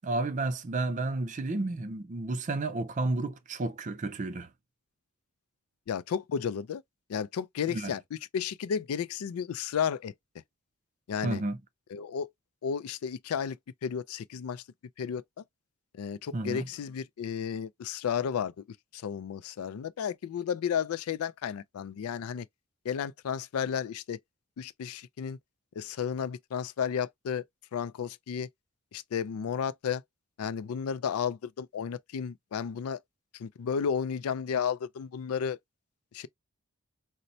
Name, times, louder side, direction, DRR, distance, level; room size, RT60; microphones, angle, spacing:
voice 1, 0.0-4.5 7.7-7.9 11.2-11.6 16.3-16.6, right 2 dB, 35° right, 0.4 m, -31 dB
voice 2, 5.9-6.8 7.1-10.1 11.1-11.4 11.9-12.3 12.6-14.6 15.0-15.4 15.9-18.6 18.9-22.5 22.8-24.2 24.6-25.4 25.8-27.4 27.7-28.5 28.9-30.0 30.4-33.0 33.3-35.6 36.1-36.3, left 7 dB, 80° left, 0.3 m, -33 dB
4.1 x 2.1 x 2.6 m
head